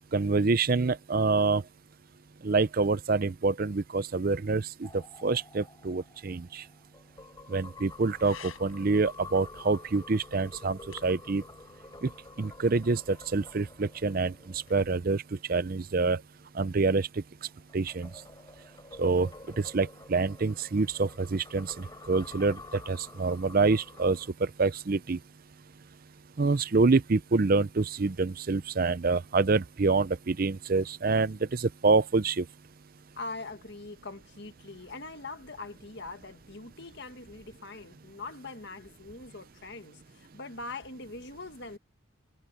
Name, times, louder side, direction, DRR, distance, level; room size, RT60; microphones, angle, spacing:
voice 1, 0.1-1.6 2.4-6.6 7.5-11.4 12.0-12.1 12.4-15.2 15.5-16.2 16.5-17.2 17.7-18.1 19.0-19.3 19.6-25.2 26.4-32.5, right 3 dB, 45° right, 0.5 m, -26 dB
sound 1, 4.8-15.4 17.4-24.3, left 3 dB, 20° left, 4.2 m, -49 dB
sound 2, 7.6-14.9, left 6 dB, 70° left, 6.2 m, -55 dB
voice 2, 33.2-41.8, left 3 dB, 50° left, 1.8 m, -42 dB
head